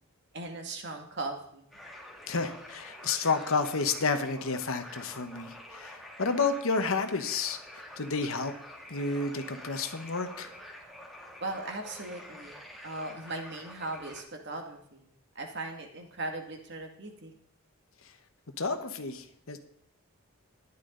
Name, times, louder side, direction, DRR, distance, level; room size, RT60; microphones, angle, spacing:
voice 1, 0.3-1.7 11.4-17.3, right 2 dB, 55° right, 3 dB, 2.3 m, -39 dB
sound 1, 1.7-14.2, left 1 dB, ahead, 1.9 m, -47 dB
voice 2, 2.3-8.5 8.9-10.5 18.0-18.1 18.6-19.6, left 4 dB, 75° left, 7 dB, 1.2 m, -31 dB
14.0 x 11.5 x 4.0 m, 0.71 s
head